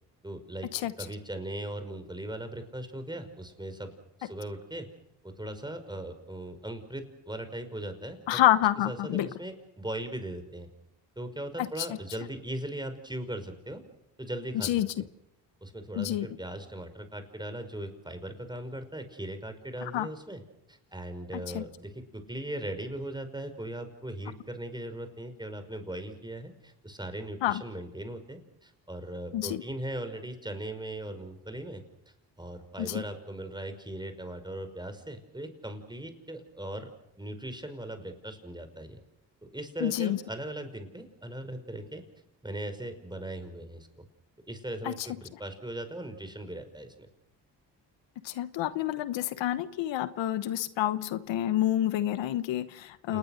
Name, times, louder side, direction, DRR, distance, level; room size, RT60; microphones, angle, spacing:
voice 1, 0.2-0.7 1.0-3.9 4.2-4.9 5.2-8.4 8.9-10.7 11.2-13.8 14.2-15.1 15.6-20.4 20.7-31.8 32.4-36.9 37.2-39.0 39.5-42.0 42.4-44.0 44.5-47.1 53.1-53.2, right 1 dB, 10° right, 8 dB, 5.5 m, -39 dB
voice 2, 8.3-9.3 11.6-11.9 14.5-14.9 15.9-16.3 19.8-20.1 21.3-21.6 27.4-27.6 29.3-29.6 32.8-33.0 39.8-40.2 44.8-45.1 48.2-53.2, left 13 dB, 80° left, 14 dB, 1.1 m, -28 dB
29.0 x 19.5 x 6.6 m, 0.82 s
supercardioid pair, 65°, 44 cm